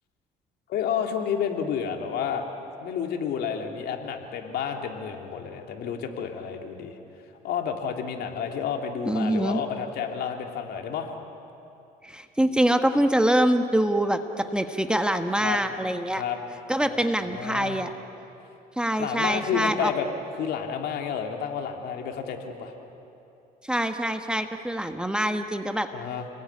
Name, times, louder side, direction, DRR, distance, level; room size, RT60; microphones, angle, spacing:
voice 1, 0.7-2.4 2.8-7.0 7.4-11.1 15.4-15.6 16.1-16.4 16.9-17.9 19.0-20.1 20.4-22.7 25.9-26.2, left 7 dB, 70° left, 3 dB, 3.1 m, -30 dB
voice 2, 9.1-9.6 12.0-16.2 16.7-17.9 18.8-19.9 23.6-25.9, right 1 dB, 5° right, 7 dB, 1.4 m, -24 dB
29.5 x 20.5 x 9.8 m, 2.8 s
cardioid pair, 110°, 17 cm